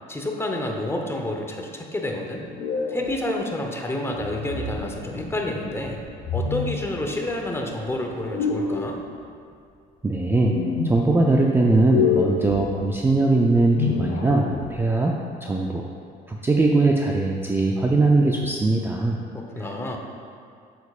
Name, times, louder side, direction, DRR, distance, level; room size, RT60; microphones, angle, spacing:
voice 1, 0.1-2.4 2.9-6.0 6.3-9.0 19.3-20.0, left 1 dB, 15° left, 2 dB, 0.8 m, -29 dB
sound 1, 2.5-3.1 4.1-4.8 6.2-6.8 8.2-8.9 10.2-11.0 11.7-12.6 13.5-14.8, left 6 dB, 75° left, 1.1 m, -27 dB
sound 2, 4.7-9.9 10.5-11.3, left 2 dB, 45° left, 1.7 m, -44 dB
voice 2, 10.0-10.6 10.8-15.8 16.3-19.2 19.6-19.7, right 2 dB, 15° right, -1 dB, 0.4 m, -21 dB
8.0 x 7.0 x 2.4 m, 2.3 s
cardioid pair, 110°, 17 cm